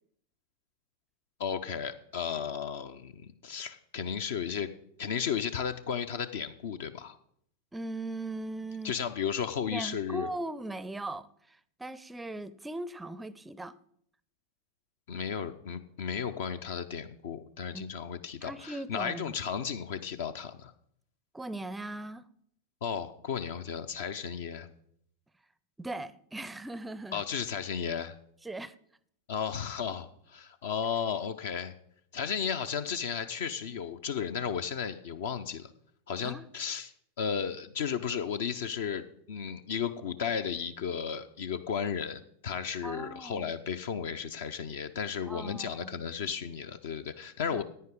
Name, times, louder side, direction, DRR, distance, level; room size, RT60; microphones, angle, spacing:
voice 1, 1.4-4.7 5.0-7.2 8.8-10.3 15.1-20.7 22.8-24.7 27.1-28.2 29.3-31.7 32.1-35.7 36.1-47.6, left 7 dB, 55° left, 10 dB, 0.6 m, -34 dB
voice 2, 7.7-9.0 9.7-13.7 17.7-17.9 18.4-19.4 21.3-22.3 25.8-27.2 28.4-28.7 36.2-36.5 42.8-43.5 45.3-45.9 47.5-47.6, right 2 dB, 10° right, 18 dB, 0.5 m, -39 dB
15.0 x 9.6 x 3.7 m, 0.68 s
figure-of-eight pair, 90°, 0 cm